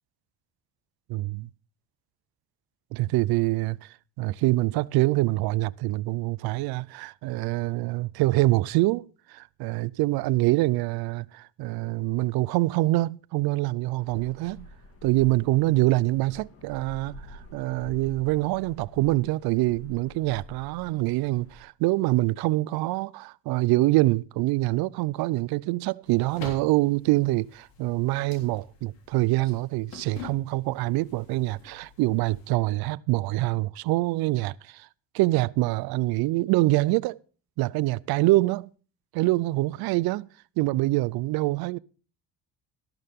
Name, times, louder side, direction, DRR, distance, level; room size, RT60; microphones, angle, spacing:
voice 1, 2.9-3.8 4.2-14.7 15.0-34.9 35.1-37.2 37.6-38.7 39.1-40.3 40.6-41.8, right 19 dB, 85° right, 0.5 m, -25 dB
sound 1, 14.0-21.6, left 1 dB, 40° left, 1.9 m, -48 dB
sound 2, 26.1-32.6, left 5 dB, 70° left, 3.5 m, -47 dB
13.5 x 12.0 x 3.6 m
cardioid pair, 145°, 36 cm